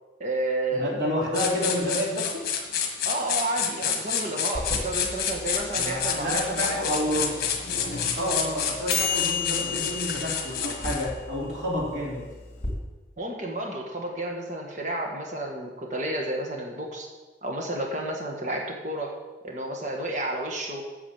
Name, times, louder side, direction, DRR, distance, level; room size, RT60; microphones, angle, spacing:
voice 1, 0.2-1.0 3.0-6.8 13.2-17.1 17.4-19.1 19.4-20.9, right 1 dB, 45° right, 0 dB, 1.5 m, -31 dB
voice 2, 0.7-2.4 5.7-7.4 8.2-12.2, equal, 90° right, -3 dB, 3.2 m, -29 dB
sound 1, 1.3-11.1, left 7 dB, 55° left, 1.6 m, -29 dB
sound 2, 4.5-12.7, left 5 dB, 40° left, 2.9 m, -33 dB
8.7 x 7.2 x 7.4 m, 1.2 s
head